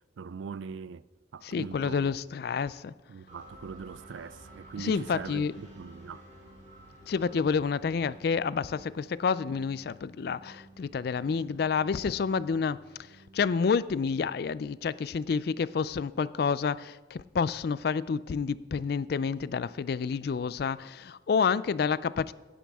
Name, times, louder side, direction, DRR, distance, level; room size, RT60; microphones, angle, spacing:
voice 1, 0.2-1.0 1.3-2.1 3.1-6.2, right 5 dB, 75° right, 0.4 m, -41 dB
voice 2, 1.4-2.9 4.8-5.6 7.1-12.8 13.3-22.3, left 5 dB, 50° left, 0.3 m, -29 dB
sound 1, 3.3-15.0, right 1 dB, 35° right, 3.8 m, -53 dB
16.5 x 10.0 x 3.5 m
head